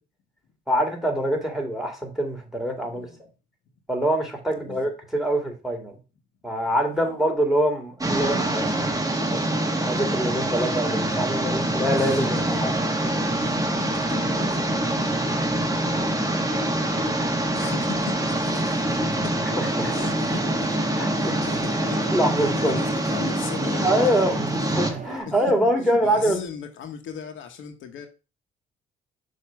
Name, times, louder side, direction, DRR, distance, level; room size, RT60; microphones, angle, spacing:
voice 1, 0.7-3.1 3.9-6.0 6.4-8.9 9.3-12.7 13.0-13.1 19.6-19.9 21.0-21.4 22.1-22.8 23.8-26.4, right 1 dB, ahead, 2.0 m, -25 dB
voice 2, 2.8-3.2 4.5-4.8 6.9-7.2 11.9-12.9 13.4-15.3 17.5-19.5 19.9-24.3 25.3-25.4 26.0-28.1, left 7 dB, 75° left, 1.1 m, -38 dB
sound 1, 8.0-24.9, right 1 dB, 15° right, 1.5 m, -25 dB
sound 2, 19.5-25.2, right 5 dB, 40° right, 1.3 m, -39 dB
6.4 x 2.8 x 5.6 m
cardioid pair, 90°, 20 cm